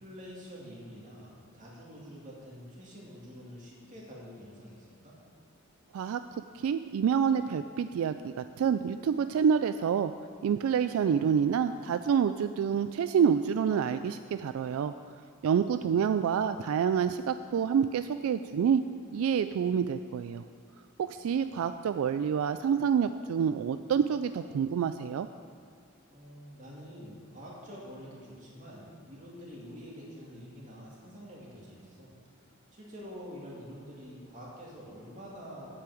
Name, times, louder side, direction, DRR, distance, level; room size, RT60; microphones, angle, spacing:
voice 1, 0.0-5.1 15.8-16.0 21.0-21.2 21.5-21.7 26.1-32.4 32.7-35.7, equal, 35° right, -5 dB, 2.4 m, -47 dB
voice 2, 6.5-10.1 10.4-14.9 15.4-18.8 19.1-20.4 21.0-25.3, right 7 dB, 80° right, 10 dB, 0.3 m, -27 dB
8.4 x 5.8 x 7.8 m, 2.2 s
head